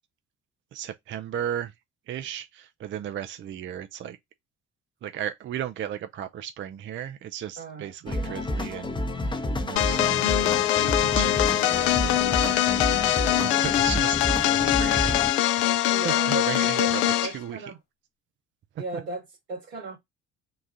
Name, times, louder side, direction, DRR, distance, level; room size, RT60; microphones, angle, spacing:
voice 1, 0.7-1.7 2.1-4.2 5.0-13.1 13.4-15.2 16.0-17.7, right 10 dB, 35° right, 0.5 m, -36 dB
voice 2, 7.6-8.5 13.2-13.7 15.9-16.9 17.2-17.8 18.8-20.0, right 3 dB, 75° right, 2.1 m, -36 dB
sound 1, 8.1-15.3, left 1 dB, 15° left, 0.7 m, -30 dB
sound 2, 9.8-17.4, left 13 dB, 75° left, 0.5 m, -23 dB
3.8 x 2.4 x 3.8 m
figure-of-eight pair, 50°, 33 cm